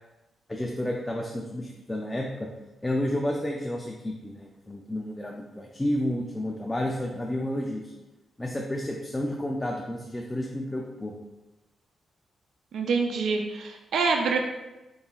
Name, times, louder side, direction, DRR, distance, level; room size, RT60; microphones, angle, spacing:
voice 1, 0.5-2.5 2.8-7.9 8.4-11.1, left 1 dB, 10° left, 0 dB, 0.3 m, -31 dB
voice 2, 12.7-14.4, right 4 dB, 75° right, 3 dB, 0.3 m, -26 dB
3.9 x 3.8 x 2.3 m, 1.0 s
wide cardioid pair, 155°, 0 cm